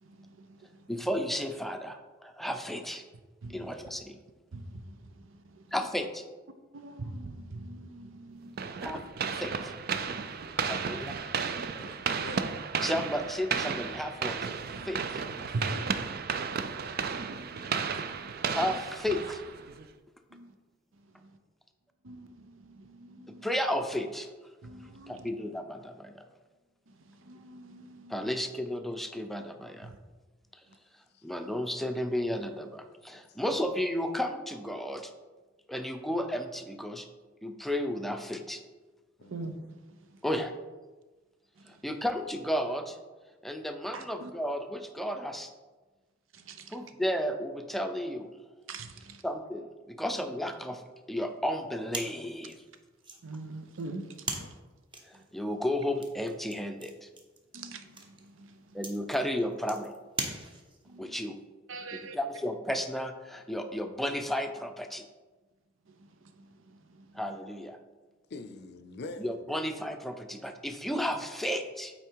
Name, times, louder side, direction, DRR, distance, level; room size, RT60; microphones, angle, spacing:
voice 1, 0.0-1.0 3.4-3.7 4.5-5.7 6.7-8.9 14.7-15.1 15.5-16.0 17.3-18.3 20.3-20.5 21.0-21.4 22.0-23.5 24.6-25.3 26.9-28.3 29.8-30.0 39.2-40.2 41.6-41.9 43.9-44.3 46.3-46.8 48.7-49.2 53.2-54.6 55.1-55.2 57.5-58.8 60.8-61.2 61.7-62.2 65.9-67.2, right 2 dB, 85° right, 0.7 m, -44 dB
voice 2, 0.9-3.0 3.5-4.2 5.7-6.2 8.8-9.0 9.3-9.7 10.6-11.2 12.8-14.4 14.8-15.2 17.9-18.0 18.5-19.4 23.3-24.3 25.1-26.3 28.1-29.9 31.2-35.1 35.7-37.1 37.4-38.6 40.2-40.5 41.7-43.0 43.4-45.5 46.7-48.4 49.2-50.8 51.1-52.6 55.1-57.1 58.7-59.9 61.0-61.4 61.9-65.1 67.1-67.8 69.2-71.9, equal, ahead, 0.5 m, -33 dB
sound 1, 8.6-19.9, right 6 dB, 50° right, 0.5 m, -33 dB
voice 3, 11.8-12.6 15.3-15.9 31.1-31.3 33.3-33.4 39.2-39.5 54.4-54.6 68.3-69.5, left 2 dB, 60° left, 0.5 m, -45 dB
sound 2, 51.9-60.9, right 2 dB, 25° right, 0.9 m, -42 dB
8.3 x 4.3 x 4.6 m
head